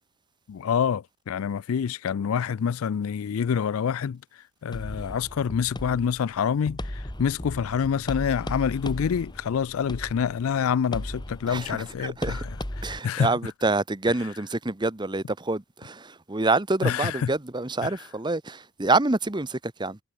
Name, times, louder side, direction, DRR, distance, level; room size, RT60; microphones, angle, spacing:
voice 1, 0.5-13.3 16.8-17.3 17.8-17.9, left 7 dB, 75° left, 0.4 m, -27 dB
sound 1, 4.7-13.0, left 1 dB, 20° left, 1.7 m, -37 dB
voice 2, 11.5-12.4 12.8-20.0, right 2 dB, 20° right, 0.9 m, -27 dB
head